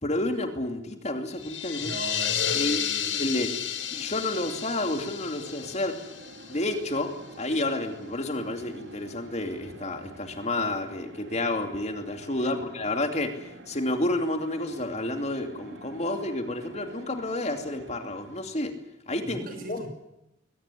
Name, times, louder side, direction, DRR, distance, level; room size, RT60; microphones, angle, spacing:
voice 1, 0.0-1.9 2.5-2.8 3.1-3.5 3.9-5.9 6.5-7.1 7.4-18.7 19.1-19.4 19.7-19.9, left 1 dB, 35° left, 5 dB, 2.7 m, -30 dB
sound 1, 1.3-7.0, left 9 dB, 80° left, 2.6 m, -32 dB
voice 2, 1.8-3.2 12.4-12.5 19.3-19.9, right 2 dB, 50° right, 7 dB, 5.6 m, -38 dB
sound 2, 3.4-18.7, right 1 dB, 80° right, 5.4 m, -48 dB
22.0 x 18.0 x 9.9 m, 0.86 s
head